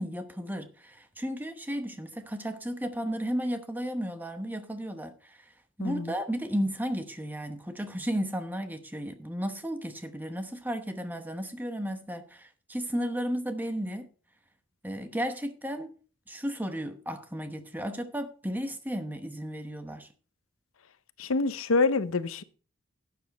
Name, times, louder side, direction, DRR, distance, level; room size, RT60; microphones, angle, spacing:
voice 1, 0.0-5.5 5.8-14.1 14.8-15.9 16.3-20.1, equal, 10° right, 0.9 m, -34 dB
voice 2, 5.8-6.1 21.2-22.4, left 3 dB, 75° left, 0.7 m, -26 dB
12.0 x 8.5 x 4.1 m
head